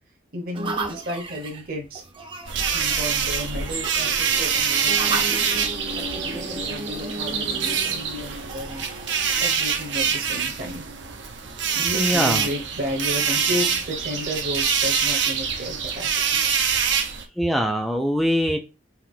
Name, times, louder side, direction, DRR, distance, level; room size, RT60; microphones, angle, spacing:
voice 1, 0.3-2.0 2.5-5.6 5.9-8.9 9.4-10.9 11.7-16.4, equal, 50° right, 0 dB, 1.1 m, -33 dB
sound 1, 0.5-10.1, right 2 dB, 25° right, 0.7 m, -35 dB
sound 2, 2.5-17.2, right 7 dB, 70° right, 0.8 m, -25 dB
voice 2, 11.7-12.5 17.4-18.6, equal, ahead, 4 dB, 0.4 m, -23 dB
4.8 x 3.0 x 3.7 m, 0.27 s
head